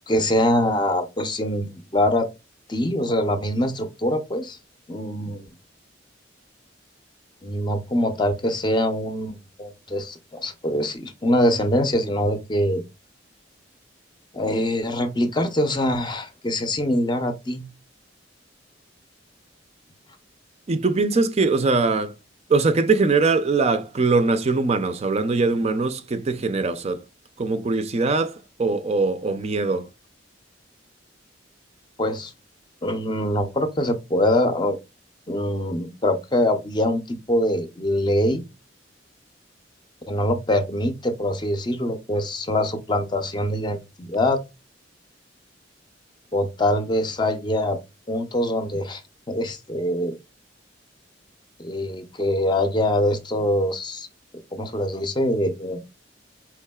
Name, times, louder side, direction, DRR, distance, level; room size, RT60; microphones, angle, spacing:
voice 1, 0.1-2.3 2.7-4.6 4.9-5.5 7.4-12.8 14.3-17.7 32.0-32.3 32.8-34.8 35.3-38.4 40.1-44.4 46.3-47.8 48.1-49.0 49.3-50.2 51.6-54.1 54.5-55.8, left 1 dB, 25° left, 0.6 m, -24 dB
voice 2, 20.7-22.1 22.5-27.0 27.4-29.9, right 3 dB, 35° right, 0.4 m, -22 dB
4.7 x 3.5 x 2.2 m
head